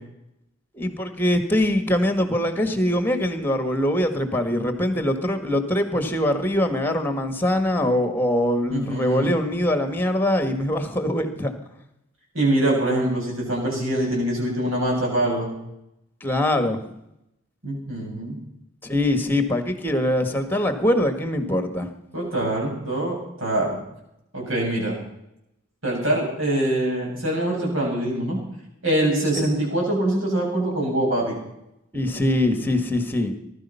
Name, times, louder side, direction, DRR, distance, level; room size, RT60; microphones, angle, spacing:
voice 1, 0.7-11.5 16.2-16.8 18.8-21.9 31.9-33.3, left 1 dB, 10° left, 7 dB, 1.6 m, -23 dB
voice 2, 8.7-9.3 12.3-15.5 17.6-18.4 22.1-23.8 24.3-24.9 25.8-28.4 28.8-31.4, right 1 dB, 85° right, -1 dB, 7.9 m, -24 dB
20.0 x 12.5 x 5.7 m, 0.83 s
head